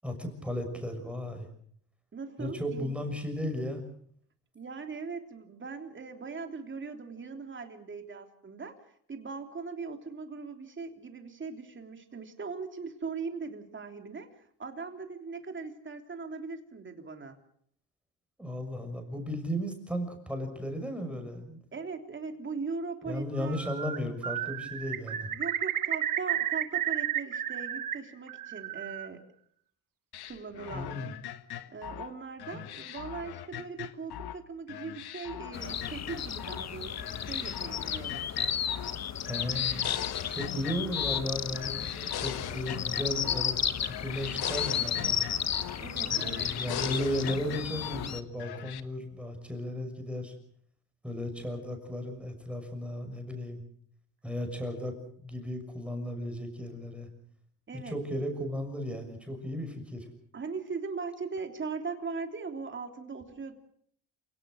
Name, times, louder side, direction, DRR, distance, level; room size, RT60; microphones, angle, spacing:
voice 1, 0.0-1.5 2.4-3.8 18.4-21.6 23.0-25.3 30.7-31.1 32.5-32.7 39.2-39.9 40.3-45.2 46.1-50.3 51.0-53.6 54.2-57.1 57.8-60.1, left 1 dB, 5° right, 4 dB, 6.3 m, -35 dB
voice 2, 2.1-2.9 4.5-17.4 21.7-23.6 25.3-29.2 30.2-30.9 31.7-38.2 45.8-46.5 57.7-58.0 60.3-63.5, right 4 dB, 30° right, 5 dB, 3.4 m, -40 dB
Bird, 23.4-24.0 24.2-27.9 28.3-29.1, right 11 dB, 50° right, 2.0 m, -32 dB
sound 1, 30.1-34.4 34.7-36.7 37.0-39.0 39.2-41.3 41.5-43.6 43.8-45.8 46.1-48.1 48.4-48.8, left 11 dB, 65° left, 1.5 m, -40 dB
sound 2, 35.5-48.2, left 8 dB, 40° left, 1.4 m, -33 dB
28.5 x 18.0 x 6.4 m, 0.64 s
cardioid pair, 120°, 41 cm